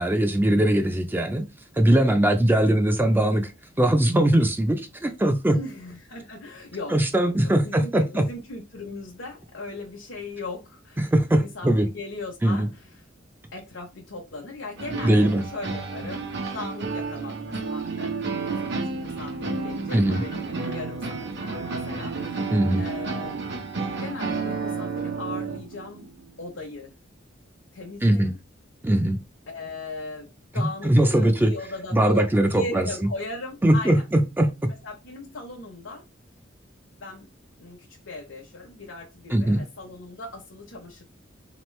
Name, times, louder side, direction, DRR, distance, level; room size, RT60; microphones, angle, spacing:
voice 1, 0.0-1.4 1.7-3.5 3.8-5.6 6.9-8.2 11.0-11.9 12.4-12.7 15.0-15.4 19.9-20.2 22.5-22.8 28.0-28.3 28.8-29.2 30.6-31.5 31.9-32.9 33.6-34.5 39.3-39.6, right 1 dB, 10° right, 0.4 m, -21 dB
voice 2, 5.5-13.0 13.5-16.3 16.5-23.4 24.0-26.1 26.4-26.9 27.7-28.4 29.5-34.1 34.7-36.0 37.0-37.3 37.6-41.0, left 3 dB, 80° left, 0.9 m, -38 dB
sound 1, 14.8-25.6, right 4 dB, 60° right, 0.9 m, -32 dB
sound 2, 17.6-26.4, right 6 dB, 80° right, 0.3 m, -37 dB
3.8 x 3.0 x 3.1 m
head